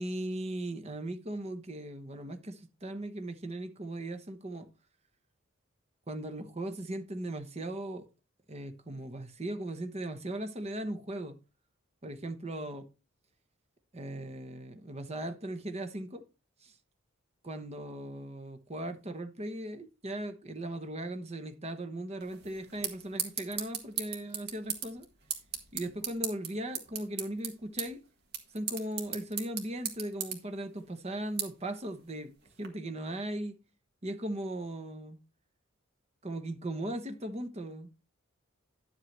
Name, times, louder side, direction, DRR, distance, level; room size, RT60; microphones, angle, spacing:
voice 1, 0.0-4.7 6.1-8.1 8.5-11.3 12.0-12.8 13.9-16.2 16.6-16.7 17.4-25.1 25.7-28.0 28.5-32.3 32.6-33.6 34.0-35.2 36.2-37.9, right 1 dB, 30° right, 1.0 m, -38 dB
sound 1, 22.2-32.7, right 7 dB, 50° right, 1.8 m, -40 dB
11.0 x 7.8 x 3.3 m
head